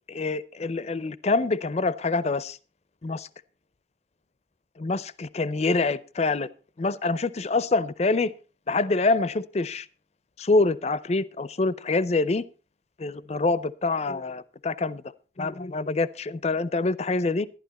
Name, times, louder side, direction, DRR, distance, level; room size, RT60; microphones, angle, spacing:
voice 1, 0.1-2.6 3.0-3.3 4.8-6.5 6.8-8.3 8.7-9.9 10.4-12.4 13.0-15.0 15.4-17.5, left 3 dB, 35° left, 0.5 m, -25 dB
11.5 x 11.5 x 4.2 m
head